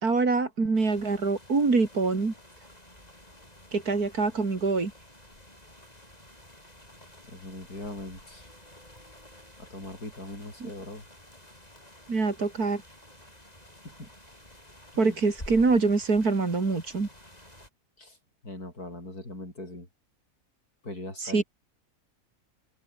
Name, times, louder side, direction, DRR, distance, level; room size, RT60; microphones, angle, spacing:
voice 1, 0.0-2.3 3.7-4.9 10.6-10.7 12.1-12.8 15.0-17.1 21.2-21.4, right 4 dB, 80° right, 3.8 m, -25 dB
sound 1, 0.7-17.7, left 1 dB, 25° left, 8.2 m, -51 dB
voice 2, 7.3-8.5 9.6-11.1 13.9-14.1 14.9-15.2 18.0-18.2 18.4-19.9 20.8-21.4, left 2 dB, 85° left, 8.6 m, -40 dB
omnidirectional pair, 1.6 m